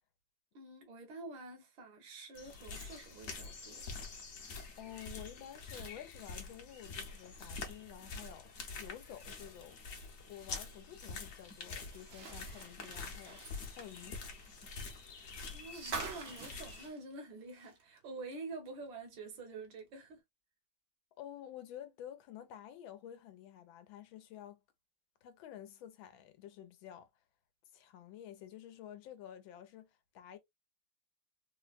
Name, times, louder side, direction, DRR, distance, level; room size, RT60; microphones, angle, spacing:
voice 1, 0.5-3.9 15.5-20.2, right 3 dB, 70° right, 1.7 m, -48 dB
sound 1, 2.4-16.9, left 4 dB, 55° left, 1.1 m, -46 dB
voice 2, 4.8-8.5 8.8-9.8 10.2-13.4 13.7-14.2 21.2-24.6 25.2-27.1 27.7-30.4, left 10 dB, 80° left, 1.5 m, -50 dB
sound 2, 11.9-18.0 18.3-18.4 19.8-19.9, right 5 dB, 55° right, 0.7 m, -47 dB
4.3 x 2.1 x 2.3 m
omnidirectional pair, 2.1 m